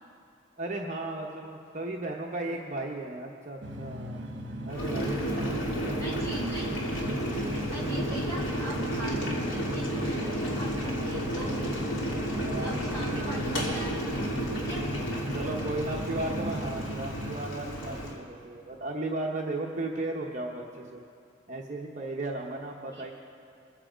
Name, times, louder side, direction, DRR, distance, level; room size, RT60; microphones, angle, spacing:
voice 1, 0.6-4.3 4.7-6.1 12.3-12.9 15.3-21.0 21.5-23.1, right 2 dB, 35° right, 0 dB, 0.8 m, -35 dB
sound 1, 3.6-17.4, equal, 60° right, 1.2 m, -38 dB
Boiling, 4.7-18.2, equal, 80° left, 2.7 m, -32 dB
voice 2, 4.8-5.1 5.9-6.7 7.6-12.0 12.6-14.9 22.9-23.1, equal, 15° left, -8 dB, 3.8 m, -42 dB
22.5 x 7.6 x 5.0 m, 2.5 s
head